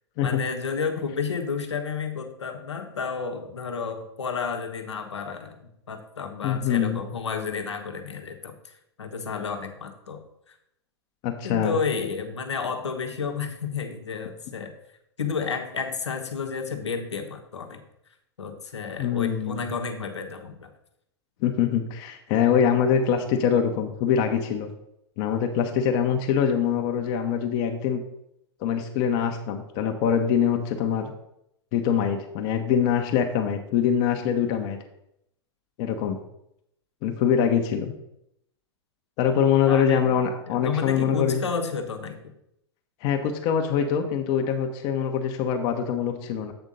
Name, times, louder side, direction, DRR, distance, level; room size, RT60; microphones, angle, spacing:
voice 1, 0.2-10.6 11.4-14.7 15.2-17.8 18.4-20.7 39.7-40.0 40.5-42.2, left 5 dB, 85° left, 5 dB, 1.0 m, -31 dB
voice 2, 6.4-7.0 11.2-11.7 19.0-19.6 21.4-24.7 25.2-28.0 28.6-31.1 31.7-34.8 35.8-36.2 37.0-37.9 39.2-41.4 43.0-46.5, left 8 dB, 45° left, 4 dB, 0.9 m, -24 dB
7.9 x 3.6 x 5.4 m, 0.79 s
hypercardioid pair, 110°, 14 cm